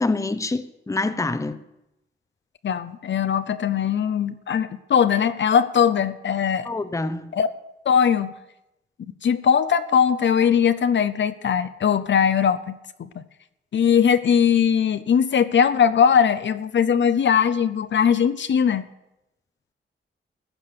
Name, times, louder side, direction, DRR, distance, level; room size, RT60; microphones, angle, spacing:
voice 1, 0.0-1.6 6.7-7.3, left 3 dB, 15° left, 0.7 m, -26 dB
voice 2, 2.6-6.7 7.3-7.5 7.9-8.4 9.2-13.2 13.7-18.9, left 7 dB, 65° left, 0.7 m, -20 dB
15.0 x 8.5 x 6.9 m
wide cardioid pair, 115°, 21 cm